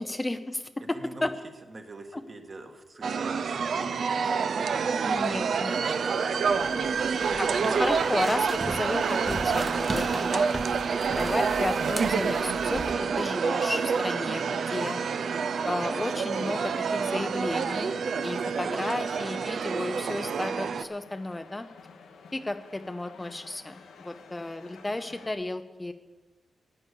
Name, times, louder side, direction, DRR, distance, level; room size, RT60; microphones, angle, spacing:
voice 1, 0.0-1.3 2.1-2.2 5.0-5.8 7.4-10.6 11.1-15.0 15.6-21.7 22.3-25.9, left 2 dB, 20° left, 9 dB, 0.5 m, -33 dB
voice 2, 0.9-1.3 1.7-5.1 5.5-6.3 6.7-7.0 7.2-7.5, right 2 dB, 40° right, 4 dB, 1.5 m, -45 dB
sound 1, 3.0-20.8, right 5 dB, 65° right, 0.5 m, -28 dB
sound 2, 6.0-25.3, left 5 dB, 90° left, 1.2 m, -51 dB
sound 3, 6.5-12.9, right 1 dB, 25° right, 1.0 m, -39 dB
9.9 x 9.6 x 6.8 m, 1.2 s
cardioid pair, 85°, 0 cm